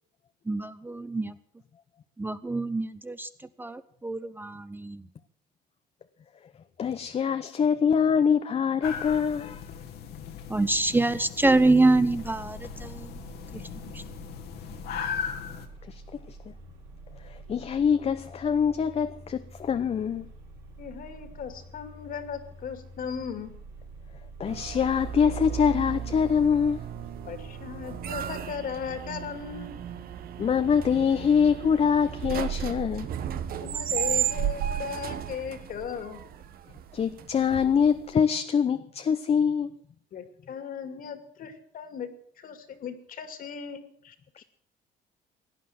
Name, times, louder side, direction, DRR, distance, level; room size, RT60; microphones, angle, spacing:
voice 1, 0.5-1.3 2.2-3.3 3.6-5.0 10.5-13.1, right 2 dB, 10° right, 0.7 m, -25 dB
voice 2, 6.8-9.6 15.9-16.0 16.3-16.5 17.2-20.3 24.4-26.8 30.4-33.1 36.9-39.7, left 7 dB, 35° left, 0.8 m, -24 dB
sound 1, 8.8-15.7, left 7 dB, 75° left, 2.0 m, -38 dB
sound 2, 11.4-28.2, right 2 dB, 80° right, 5.4 m, -47 dB
voice 3, 20.8-23.5 27.2-29.8 33.5-36.2 40.1-42.1 42.4-44.4, left 7 dB, 55° left, 2.5 m, -37 dB
sound 3, 24.5-38.1, right 10 dB, 60° right, 1.4 m, -34 dB
17.5 x 10.0 x 7.7 m
cardioid pair, 110°, 17 cm